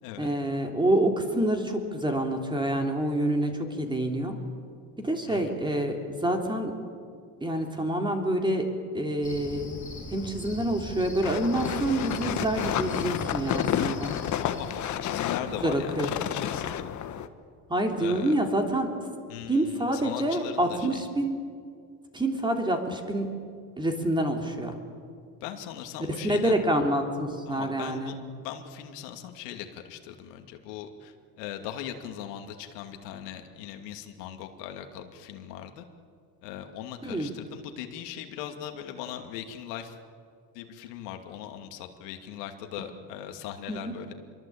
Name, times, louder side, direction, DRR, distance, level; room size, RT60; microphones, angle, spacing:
voice 1, 0.2-4.4 5.0-6.7 7.4-8.7 8.9-9.8 10.1-14.1 15.6-16.1 17.7-18.9 19.5-21.4 22.1-23.4 23.8-24.7 26.2-28.1 37.0-37.3 43.7-43.9, right 1 dB, 10° right, 3 dB, 3.2 m, -27 dB
voice 2, 5.3-5.6 14.4-16.9 18.0-18.4 19.3-21.0 25.4-26.6 27.5-28.2 28.4-35.8 36.4-40.0 40.5-44.1, left 10 dB, 90° left, 5 dB, 2.7 m, -39 dB
Cricket, 9.2-14.7, left 3 dB, 15° left, 4.5 m, -41 dB
sound 1, 11.2-17.3, left 10 dB, 40° left, 1.4 m, -30 dB
26.5 x 23.0 x 8.8 m, 2.2 s
cardioid pair, 135°, 46 cm